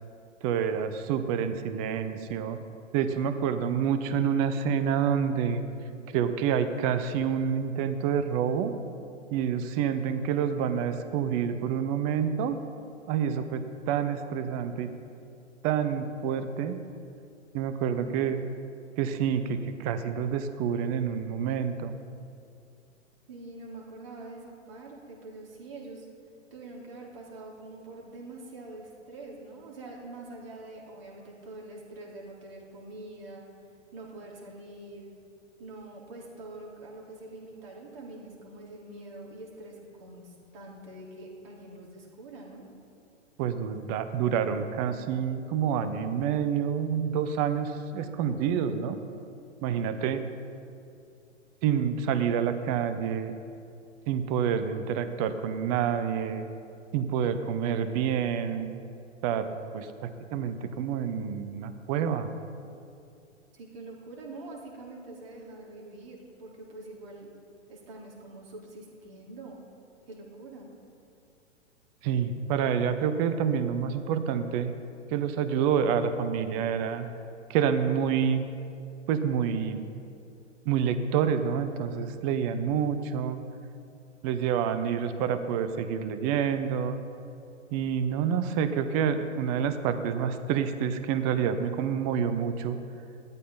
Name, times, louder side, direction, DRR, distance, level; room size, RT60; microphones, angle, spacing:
voice 1, 0.4-2.6 2.9-5.6 6.1-8.7 9.3-12.6 13.1-14.9 15.6-16.8 17.5-18.4 19.0-21.9 43.4-49.0 49.6-50.2 51.6-53.3 54.1-56.5 56.9-58.7 59.2-62.3 72.0-74.7 75.1-77.1 77.5-78.4 79.1-79.8 80.6-83.4 84.2-87.0 87.7-92.8, right 8 dB, 30° right, 10 dB, 0.8 m, -28 dB
voice 2, 17.9-18.3 23.3-26.1 26.5-33.5 33.9-35.1 35.6-42.7 49.8-50.0 63.5-67.3 67.7-69.6 70.1-70.7, right 2 dB, 50° right, -3 dB, 3.8 m, -45 dB
16.5 x 13.0 x 3.9 m, 2.6 s
figure-of-eight pair, 110°, 37 cm